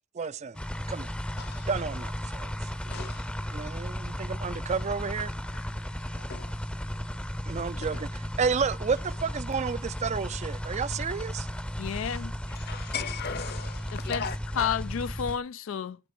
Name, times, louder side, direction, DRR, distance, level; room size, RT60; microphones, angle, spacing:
voice 1, 0.1-0.6 0.9-1.1 1.7-2.5 3.5-5.3 7.5-11.5, right 5 dB, 35° right, 0.4 m, -31 dB
sound 1, 0.5-15.4, equal, 5° left, 0.6 m, -35 dB
voice 2, 1.4-1.7 2.8-3.3 5.5-5.7 6.1-6.6 7.9-8.0 12.5-14.8, left 6 dB, 50° left, 1.0 m, -38 dB
voice 3, 11.8-12.3 13.9-14.2 14.6-16.0, left 7 dB, 75° left, 0.3 m, -31 dB
11.5 x 3.9 x 6.0 m
head